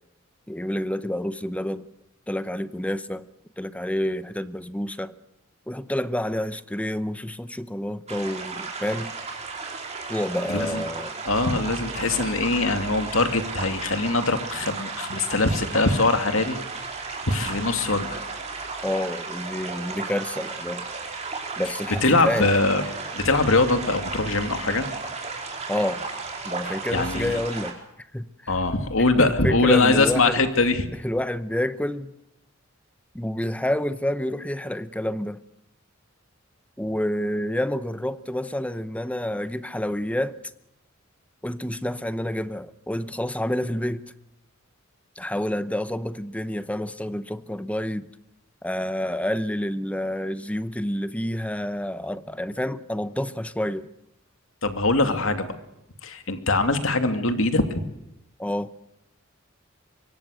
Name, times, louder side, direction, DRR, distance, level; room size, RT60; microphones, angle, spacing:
voice 1, 0.5-1.8 2.3-3.3 3.6-5.1 5.7-9.1 10.1-11.1 18.8-20.9 21.6-22.5 25.7-26.0 26.4-27.8 28.1-28.5 29.2-30.4 31.0-32.1 33.1-35.4 36.8-40.4 41.4-44.1 45.2-48.1 48.6-53.9 58.4-58.7, left 1 dB, 5° left, 14 dB, 0.8 m, -28 dB
sound 1, 8.1-27.7, right 4 dB, 35° right, 4.5 m, -34 dB
voice 2, 10.5-10.8 11.3-18.2 22.0-22.8 23.1-24.9 26.9-27.4 28.5-30.9 54.6-55.5 56.0-57.8, left 3 dB, 70° left, 7 dB, 2.6 m, -22 dB
25.0 x 23.5 x 6.6 m, 0.85 s
head